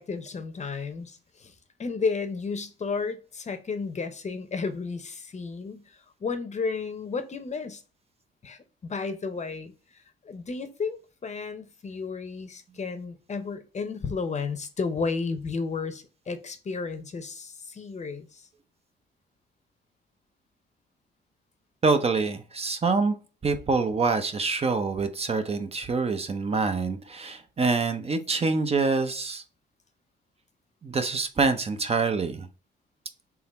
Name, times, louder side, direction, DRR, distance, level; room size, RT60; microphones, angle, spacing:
voice 1, 0.0-1.5 1.8-7.8 8.4-18.5, left 4 dB, 35° left, 0.7 m, -33 dB
voice 2, 21.8-23.2 23.4-29.4 30.8-32.5, right 4 dB, 30° right, 0.6 m, -26 dB
3.8 x 2.9 x 4.1 m
cardioid pair, 90°, 20 cm